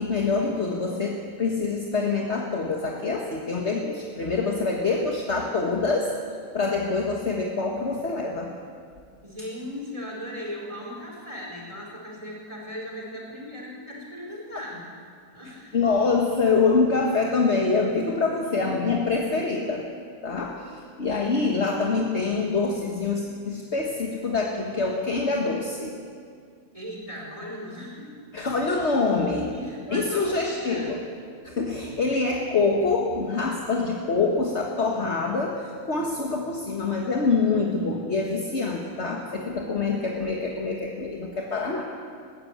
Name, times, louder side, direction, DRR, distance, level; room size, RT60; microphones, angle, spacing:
voice 1, 0.0-6.2 6.5-8.5 14.5-14.6 15.7-19.9 20.2-25.9 28.3-29.5 29.9-31.0 31.4-41.8, left 4 dB, 50° left, 0 dB, 1.8 m, -25 dB
voice 2, 9.2-14.8 15.3-15.9 26.7-28.3 29.5-30.9, equal, 20° right, -3 dB, 4.7 m, -38 dB
20.5 x 16.0 x 8.7 m, 2.2 s
omnidirectional pair, 1.5 m